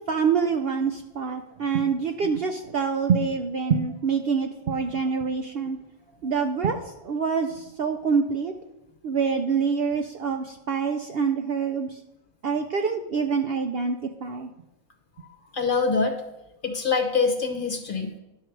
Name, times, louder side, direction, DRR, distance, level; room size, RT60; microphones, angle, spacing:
voice 1, 0.1-5.8 6.2-8.5 9.0-11.9 12.4-14.5, right 5 dB, 60° right, 5 dB, 0.7 m, -26 dB
voice 2, 15.5-16.2 16.6-18.1, left 4 dB, 40° left, 5 dB, 1.0 m, -24 dB
11.0 x 6.5 x 4.6 m, 0.94 s
omnidirectional pair, 1.4 m